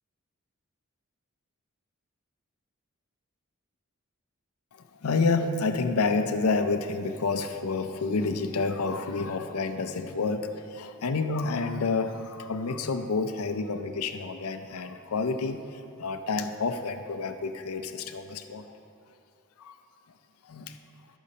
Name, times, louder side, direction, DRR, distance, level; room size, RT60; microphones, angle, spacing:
voice 1, 4.7-18.7 19.6-19.8 20.4-20.8, left 4 dB, 85° left, 8 dB, 0.5 m, -29 dB
11.5 x 8.2 x 2.8 m, 2.6 s
head